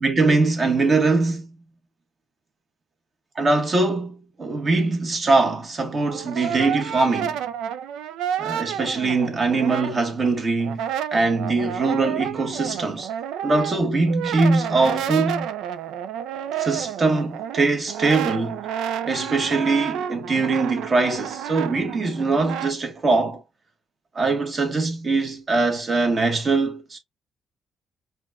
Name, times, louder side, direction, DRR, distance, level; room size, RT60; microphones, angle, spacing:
voice 1, 0.0-1.5 3.3-7.4 8.4-13.1 13.4-15.5 16.6-18.6 19.0-23.4 24.1-27.0, right 3 dB, 35° right, 1.4 m, -22 dB
Brass instrument, 5.9-10.3 10.6-22.8, right 9 dB, 90° right, 0.4 m, -30 dB
5.0 x 2.4 x 2.2 m
cardioid pair, 90°, 0 cm